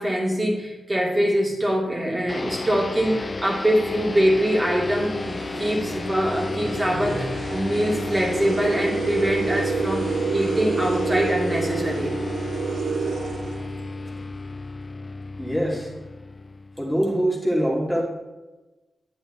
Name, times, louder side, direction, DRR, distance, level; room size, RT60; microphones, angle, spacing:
voice 1, 0.0-12.2, equal, 30° right, -2 dB, 2.8 m, -24 dB
sound 1, 2.3-17.1, left 3 dB, 40° left, 0.4 m, -32 dB
sound 2, 2.9-3.2 4.0-4.1 4.6-14.3, right 5 dB, 85° right, 0.5 m, -30 dB
voice 2, 15.4-16.0 16.8-18.0, equal, ahead, -5 dB, 2.9 m, -24 dB
8.4 x 7.8 x 4.3 m, 1.1 s
cardioid pair, 50°, 0 cm